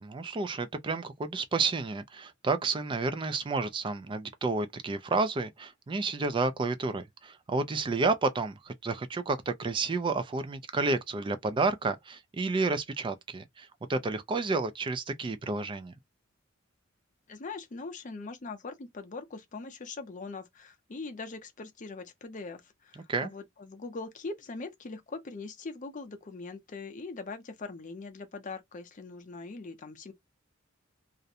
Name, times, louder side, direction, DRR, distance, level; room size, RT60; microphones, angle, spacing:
voice 1, 0.0-15.9 23.1-23.3, right 3 dB, 25° right, 0.3 m, -30 dB
voice 2, 17.3-30.1, left 3 dB, 40° left, 0.5 m, -41 dB
2.4 x 2.1 x 2.6 m
head